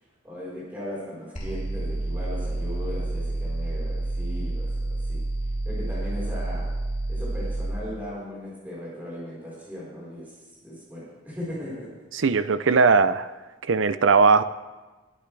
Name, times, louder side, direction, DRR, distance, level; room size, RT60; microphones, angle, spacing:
voice 1, 0.2-5.2 5.6-6.7 7.1-10.3 10.6-11.9, left 1 dB, 10° right, -8 dB, 4.4 m, -37 dB
sound 1, 1.3-7.7, right 2 dB, 35° left, 3.0 m, -29 dB
voice 2, 12.1-13.3 13.6-14.4, right 4 dB, 75° right, 13 dB, 0.6 m, -19 dB
20.0 x 10.0 x 3.4 m, 1.2 s
head